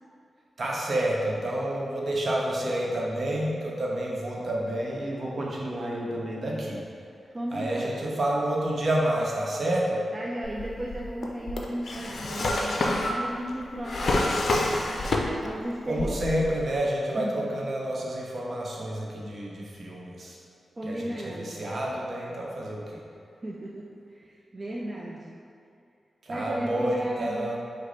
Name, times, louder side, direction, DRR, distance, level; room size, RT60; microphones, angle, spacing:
voice 1, 0.6-6.8 7.5-10.0 15.8-20.4 20.9-23.0 26.2-27.6, right 1 dB, 60° right, -3 dB, 0.8 m, -29 dB
voice 2, 7.3-8.2 10.1-14.4 15.4-16.3 17.1-17.4 20.8-21.7 23.4-25.4 26.3-27.5, right 1 dB, 35° right, -3 dB, 0.4 m, -35 dB
Drawer open or close, 10.4-15.6 15.9-16.7, left 2 dB, 65° left, 0.4 m, -28 dB
5.0 x 2.1 x 4.0 m, 2.5 s
cardioid pair, 55°, 0 cm